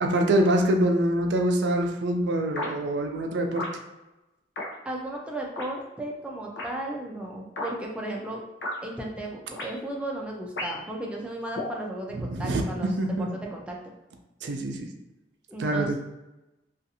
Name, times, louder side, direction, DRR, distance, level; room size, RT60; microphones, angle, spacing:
voice 1, 0.0-3.7 12.2-13.3 14.4-14.9 15.6-15.9, right 1 dB, 85° right, 4 dB, 0.4 m, -25 dB
sound 1, 2.6-2.7 3.6-3.8 4.6-4.7 5.6-5.7 6.6-6.7 7.6-7.7 8.6-8.8 9.6-9.7 10.6-10.9 11.6-11.8, left 1 dB, 80° left, 0.6 m, -33 dB
voice 2, 4.8-8.4 8.8-12.9 13.2-13.9 15.5-15.9, right 1 dB, 5° right, -1 dB, 0.4 m, -35 dB
2.6 x 2.4 x 2.6 m, 0.99 s
head